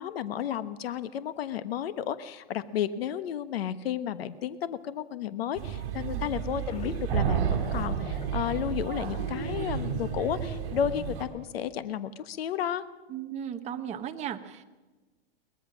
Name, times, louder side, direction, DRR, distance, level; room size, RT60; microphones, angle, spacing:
voice 1, 0.0-12.8, left 9 dB, 75° left, 13 dB, 1.3 m, -32 dB
Male speech man speaking / Child speech kid speaking / Chatter, 5.5-11.2, right 7 dB, 45° right, 5.4 m, -34 dB
sound 1, 6.5-9.7 10.1-10.2 10.5-10.6 11.0-11.1, left 5 dB, 20° left, 2.3 m, -45 dB
sound 2, 7.1-9.1, right 8 dB, 65° right, 3.3 m, -30 dB
voice 2, 13.1-14.6, right 9 dB, 20° right, 6 dB, 1.2 m, -36 dB
22.5 x 19.5 x 6.3 m, 1.2 s
hypercardioid pair, 150°, 30 cm